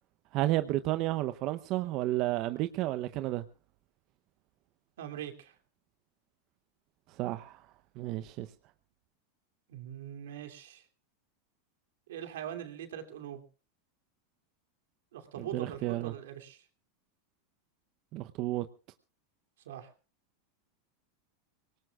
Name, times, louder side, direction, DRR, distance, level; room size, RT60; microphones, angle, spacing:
voice 1, 0.3-3.4 7.2-7.6 8.0-8.5 15.4-16.1 18.1-18.7, right 16 dB, 50° right, 10 dB, 0.7 m, -31 dB
voice 2, 5.0-5.5 9.7-10.8 12.1-13.4 15.1-16.6 19.6-19.9, right 10 dB, 80° right, 6 dB, 2.7 m, -42 dB
24.5 x 19.0 x 2.4 m, 0.35 s
supercardioid pair, 125°, 0 cm